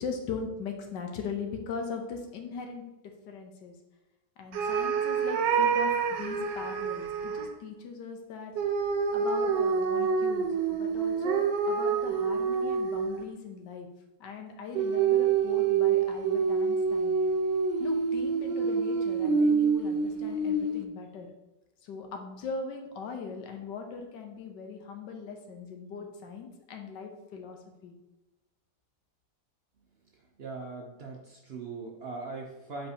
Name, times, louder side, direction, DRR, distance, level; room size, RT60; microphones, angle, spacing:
voice 1, 0.0-2.8 3.3-3.8 4.4-8.5 9.1-13.9 14.2-17.1 17.8-21.3 21.8-27.6 27.8-27.9, left 5 dB, 90° left, 3 dB, 1.5 m, -40 dB
sound 1, 4.5-7.5 8.6-13.3 14.8-20.9, right 5 dB, 90° right, 1.3 m, -27 dB
voice 2, 30.4-32.9, right 3 dB, 55° right, 0 dB, 0.7 m, -40 dB
7.6 x 4.5 x 2.8 m, 1.0 s
omnidirectional pair, 1.8 m